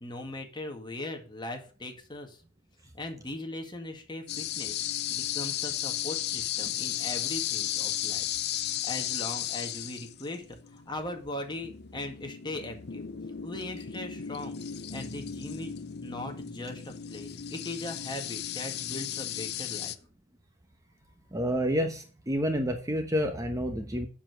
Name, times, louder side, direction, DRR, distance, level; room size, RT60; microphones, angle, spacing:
voice 1, 0.0-2.4 2.9-4.8 5.1-8.2 8.7-10.4 10.7-13.0 13.4-14.6 14.9-15.7 16.0-19.9, left 2 dB, 20° left, 3 dB, 1.9 m, -39 dB
sound 1, 4.3-20.0, left 11 dB, 50° left, 0.6 m, -35 dB
voice 2, 21.3-24.1, equal, 15° right, 6 dB, 1.0 m, -29 dB
7.5 x 7.1 x 6.2 m, 0.38 s
head